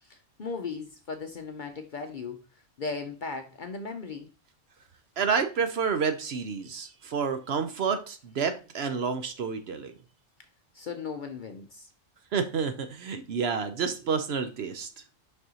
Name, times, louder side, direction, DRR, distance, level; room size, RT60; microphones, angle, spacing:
voice 1, 0.0-2.4 2.8-4.3 10.7-11.9, left 4 dB, 50° left, 0.6 m, -37 dB
voice 2, 5.2-9.9 12.3-14.9, right 6 dB, 60° right, 0.9 m, -29 dB
6.4 x 5.5 x 2.9 m
omnidirectional pair, 1.3 m